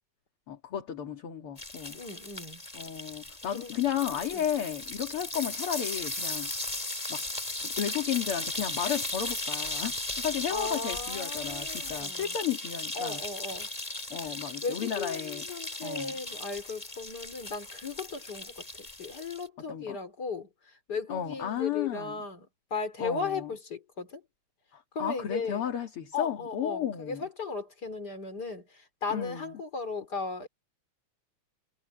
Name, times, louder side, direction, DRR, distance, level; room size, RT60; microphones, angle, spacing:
voice 1, 0.5-2.0 2.7-6.5 7.1-7.2 7.6-13.2 14.1-15.5 15.8-16.1 19.7-20.0 21.1-22.2 23.0-23.5 24.7-27.3 29.1-29.6, left 9 dB, 50° left, 2.6 m, -33 dB
sound 1, 1.6-19.5, left 2 dB, 15° left, 2.5 m, -37 dB
voice 2, 1.9-2.6 3.5-3.7 4.3-4.4 10.5-12.3 12.9-13.7 14.2-14.3 14.6-20.5 20.9-24.2 24.9-25.6 26.1-30.5, left 4 dB, 35° left, 4.3 m, -36 dB
omnidirectional pair, 3.3 m